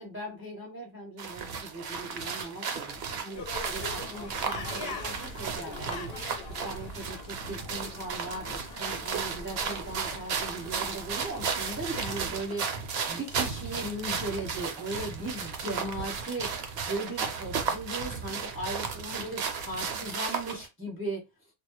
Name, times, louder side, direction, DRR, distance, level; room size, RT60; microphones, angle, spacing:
voice 1, 0.0-21.5, right 1 dB, 15° right, 0.5 m, -38 dB
sound 1, 1.2-20.7, right 6 dB, 70° right, 0.8 m, -34 dB
sound 2, 3.3-12.3, left 3 dB, 70° left, 0.8 m, -43 dB
2.2 x 2.0 x 2.9 m
omnidirectional pair, 1.1 m